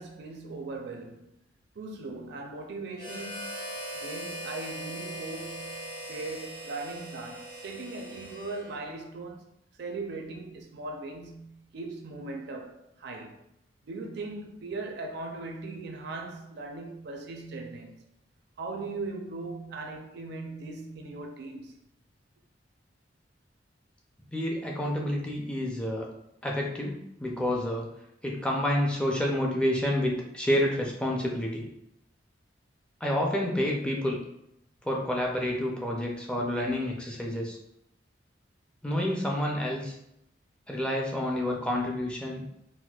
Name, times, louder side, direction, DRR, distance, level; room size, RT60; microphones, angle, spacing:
voice 1, 0.0-1.4 1.8-3.6 3.9-9.5 9.8-13.4 13.9-18.0 18.6-21.8, right 3 dB, 60° right, 0.5 m, -39 dB
Harmonica, 3.0-9.0, right 1 dB, 55° left, 1.1 m, -40 dB
voice 2, 24.3-26.1 26.4-27.9 28.2-31.7 33.0-34.2 34.8-37.6 38.8-39.9 40.7-42.4, left 1 dB, 5° left, 0.4 m, -29 dB
4.1 x 2.1 x 2.3 m
head